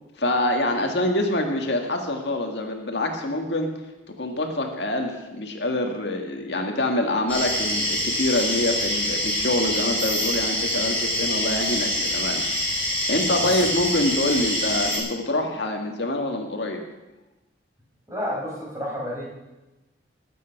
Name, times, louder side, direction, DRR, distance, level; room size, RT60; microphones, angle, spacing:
voice 1, 0.2-3.7 4.2-12.4 12.7-16.8, left 1 dB, 65° left, 3 dB, 2.0 m, -25 dB
sound 1, 7.3-15.0, equal, 10° left, 6.8 m, -25 dB
voice 2, 13.2-13.6 18.1-19.3, equal, 15° right, -4 dB, 5.5 m, -31 dB
21.0 x 9.1 x 6.0 m, 1.0 s
head